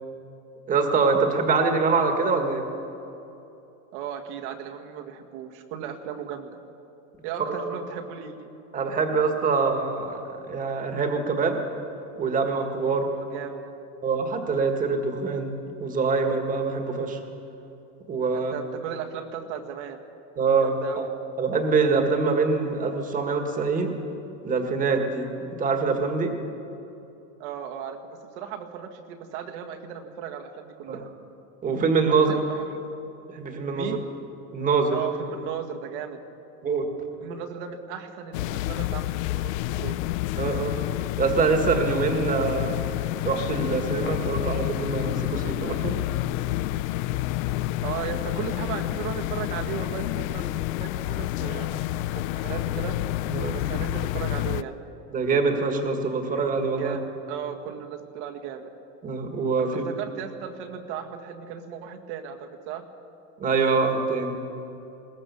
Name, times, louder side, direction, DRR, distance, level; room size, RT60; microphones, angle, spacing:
voice 1, 0.7-2.6 7.4-7.8 8.7-11.6 12.2-13.1 14.0-17.2 18.1-18.5 20.4-20.8 21.4-23.9 24.4-25.3 25.6-26.3 30.9-31.0 31.6-32.3 33.3-34.0 34.5-35.0 36.6-36.9 40.4-40.8 41.2-42.8 43.2-45.9 53.3-53.6 55.1-57.0 59.0-59.8 63.4-64.4, right 4 dB, 20° right, 5 dB, 1.8 m, -24 dB
voice 2, 3.9-6.5 7.2-8.5 13.1-13.8 18.3-20.0 20.6-21.1 27.4-31.1 32.1-32.8 33.7-34.0 34.9-36.2 37.2-40.0 47.8-53.0 53.5-54.8 56.6-58.7 59.6-62.9, right 8 dB, 60° right, 5 dB, 1.9 m, -36 dB
sound 1, 38.3-54.6, left 16 dB, 80° left, 0.6 m, -29 dB
21.0 x 18.5 x 7.0 m, 2.8 s
supercardioid pair, 170°, 40 cm